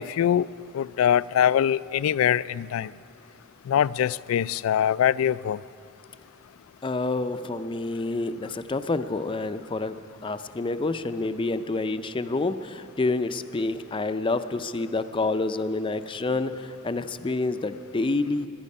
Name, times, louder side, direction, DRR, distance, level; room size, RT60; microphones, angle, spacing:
voice 1, 0.0-2.9 3.6-5.6, left 9 dB, 90° left, 0.3 m, -23 dB
voice 2, 6.8-10.0 10.2-18.5, left 3 dB, 25° left, 0.5 m, -28 dB
22.0 x 11.0 x 5.4 m
head